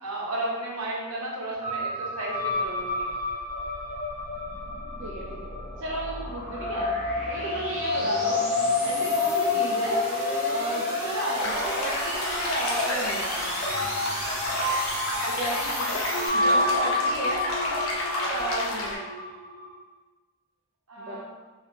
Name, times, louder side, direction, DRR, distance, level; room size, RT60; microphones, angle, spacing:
voice 1, 0.0-3.1 9.0-9.1 16.1-17.1 18.0-18.3 20.9-21.2, right 1 dB, 85° right, -4 dB, 1.0 m, -34 dB
sound 1, 1.6-19.8, left 2 dB, 45° left, 0.7 m, -30 dB
sound 2, 3.0-16.3, equal, 5° right, 1.1 m, -35 dB
voice 2, 5.8-6.9 7.3-8.5 8.8-10.0 10.5-13.5 15.2-16.0 16.3-17.8 18.2-19.2 21.0-21.2, right 1 dB, 55° right, -5 dB, 0.5 m, -34 dB
sound 3, 11.4-18.9, left 1 dB, 75° left, 0.7 m, -30 dB
3.5 x 2.7 x 2.8 m, 1.3 s
head